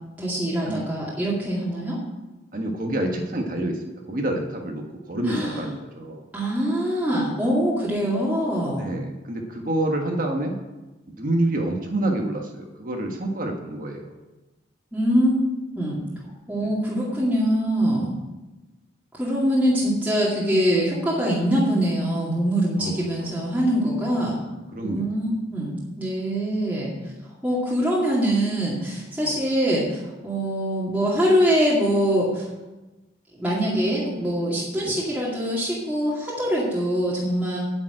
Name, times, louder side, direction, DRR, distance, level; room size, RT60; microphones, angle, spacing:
voice 1, 0.2-2.0 5.3-5.6 6.3-8.9 14.9-15.4 15.7-16.0 16.5-18.1 19.1-24.4 24.8-26.9 27.4-32.5 33.3-37.6, equal, 10° right, -8 dB, 2.4 m, -23 dB
voice 2, 2.5-6.2 8.8-10.6 11.1-14.1 16.6-16.7 22.8-22.9 23.2-23.4 24.7-25.1 29.2-29.4 34.7-35.0, right 1 dB, 45° right, 2 dB, 1.4 m, -28 dB
9.1 x 7.2 x 8.9 m, 1.1 s
head